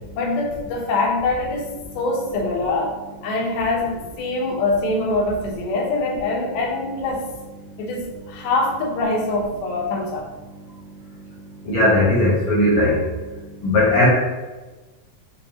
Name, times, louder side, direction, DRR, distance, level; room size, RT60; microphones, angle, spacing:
voice 1, 0.2-3.0 3.2-7.4 7.8-10.3, left 2 dB, 85° left, -1 dB, 2.6 m, -24 dB
voice 2, 11.7-13.0 13.6-14.1, left 1 dB, 70° left, -7 dB, 1.8 m, -17 dB
6.5 x 2.7 x 2.8 m, 1.2 s
omnidirectional pair, 4.3 m